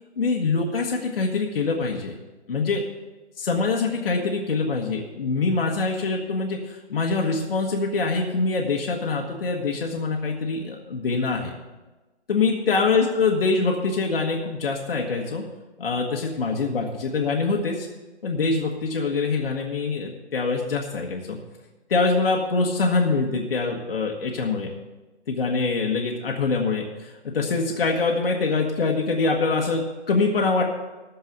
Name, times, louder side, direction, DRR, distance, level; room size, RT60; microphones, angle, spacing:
voice 1, 0.2-2.1 2.5-2.8 3.4-11.5 12.3-15.4 15.8-17.9 18.2-21.4 21.9-24.7 25.3-30.6, left 4 dB, 55° left, 0 dB, 1.5 m, -24 dB
14.0 x 4.7 x 8.7 m, 1.2 s
hypercardioid pair, 160°, 34 cm